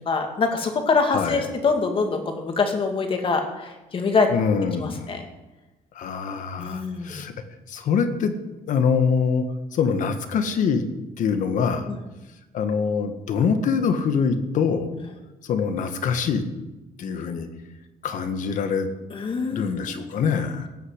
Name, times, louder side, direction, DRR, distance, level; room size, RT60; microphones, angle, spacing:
voice 1, 0.0-4.3 4.8-5.2 6.6-7.2 11.9-12.0 19.1-20.4, left 4 dB, 35° left, 4 dB, 2.4 m, -25 dB
voice 2, 4.3-5.1 5.9-7.3 7.7-8.3 8.7-9.4 9.7-10.8 11.2-11.9 12.5-14.9 15.5-16.4 17.0-17.5 18.0-18.9 19.5-20.7, left 6 dB, 60° left, 8 dB, 1.6 m, -24 dB
17.5 x 6.9 x 8.1 m, 1.1 s
cardioid pair, 130°, 15 cm